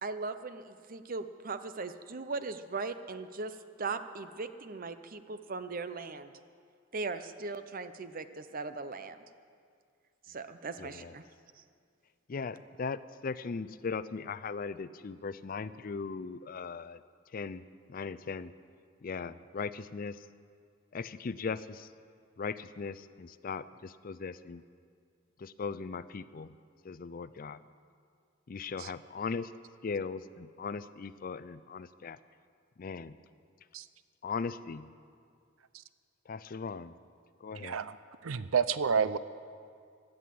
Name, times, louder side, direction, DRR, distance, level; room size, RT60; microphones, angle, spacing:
voice 1, 0.0-6.3 6.9-9.2 10.3-11.2, right 4 dB, 45° right, 11 dB, 0.7 m, -39 dB
voice 2, 10.8-11.1 12.3-17.0 17.3-17.6 17.9-18.5 19.0-20.2 20.9-21.9 22.4-24.6 25.4-26.6 26.8-27.6 28.5-29.5 29.8-32.2 32.8-33.2 34.2-34.9 36.3-36.9 37.4-37.8, left 5 dB, 45° left, 15 dB, 0.4 m, -38 dB
voice 3, 37.6-38.0 38.2-39.2, right 6 dB, 85° right, 15 dB, 0.6 m, -29 dB
16.5 x 11.0 x 7.7 m, 2.2 s
head